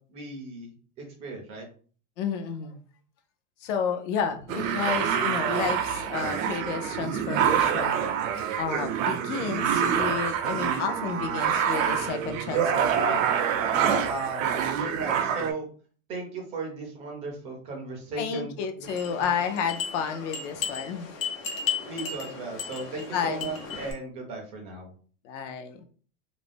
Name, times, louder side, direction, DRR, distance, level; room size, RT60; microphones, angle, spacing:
voice 1, 0.1-0.7 1.2-1.7 13.7-15.7 16.1-18.9 19.2-19.3 21.9-24.9, right 3 dB, 15° right, 0 dB, 0.3 m, -36 dB
voice 2, 2.2-2.8 3.6-8.0 8.6-13.3 18.2-21.1 23.1-23.5 25.2-25.8, left 6 dB, 65° left, 7 dB, 0.6 m, -31 dB
sound 1, 4.5-15.5, right 8 dB, 75° right, 0.5 m, -26 dB
sound 2, 18.8-23.9, left 6 dB, 85° left, 1.0 m, -35 dB
2.5 x 2.0 x 3.3 m, 0.42 s
supercardioid pair, 165°, 39 cm